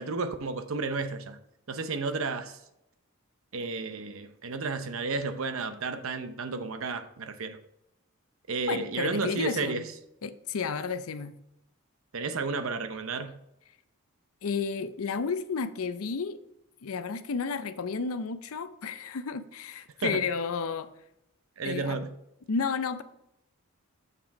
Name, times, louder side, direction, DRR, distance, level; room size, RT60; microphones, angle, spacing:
voice 1, 0.0-1.4 1.7-2.6 3.5-7.6 8.5-9.8 12.1-13.4 20.0-20.2 21.6-22.1, right 3 dB, 65° right, 0.7 m, -32 dB
voice 2, 8.7-9.9 10.2-11.3 14.4-16.4 16.8-20.9 21.6-22.0 22.5-23.0, left 5 dB, 75° left, 0.5 m, -32 dB
6.8 x 6.0 x 4.1 m
head